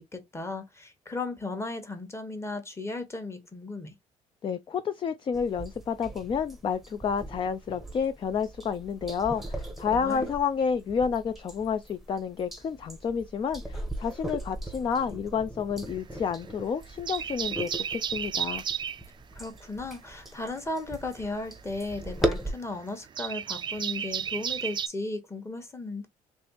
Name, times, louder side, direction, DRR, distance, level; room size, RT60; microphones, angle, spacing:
voice 1, 0.0-3.9 9.9-10.3 19.3-26.1, left 2 dB, 20° left, 1.1 m, -36 dB
voice 2, 4.4-18.6, left 6 dB, 35° left, 0.4 m, -30 dB
sound 1, 5.3-22.5, right 1 dB, ahead, 0.8 m, -38 dB
sound 2, 15.9-16.6 16.9-19.1 20.7-24.9, right 8 dB, 35° right, 0.4 m, -33 dB
3.3 x 3.1 x 2.8 m
cardioid pair, 100°, 14 cm